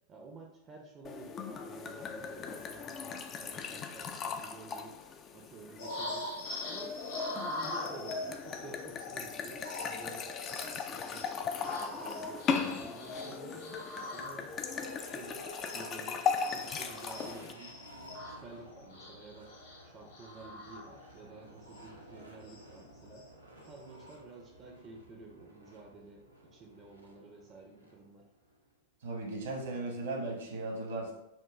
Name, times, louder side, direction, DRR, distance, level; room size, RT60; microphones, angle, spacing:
voice 1, 0.1-5.0 5.3-6.3 6.6-7.0 7.3-15.5 15.7-17.8 18.3-19.6 19.8-23.3 23.6-28.3, right 4 dB, 25° right, 1 dB, 0.6 m, -51 dB
sound 1, 1.0-17.5, left 6 dB, 30° left, 0.4 m, -38 dB
sound 2, 5.8-16.1 16.4-21.3 21.7-21.8 22.1-23.3 23.7-24.1, left 2 dB, 55° left, 1.1 m, -43 dB
sound 3, 14.5-28.7, equal, 85° right, 0.6 m, -54 dB
voice 2, 29.0-31.1, right 2 dB, 65° right, -1 dB, 1.2 m, -37 dB
5.9 x 2.3 x 3.1 m, 0.84 s
figure-of-eight pair, 90°, 0 cm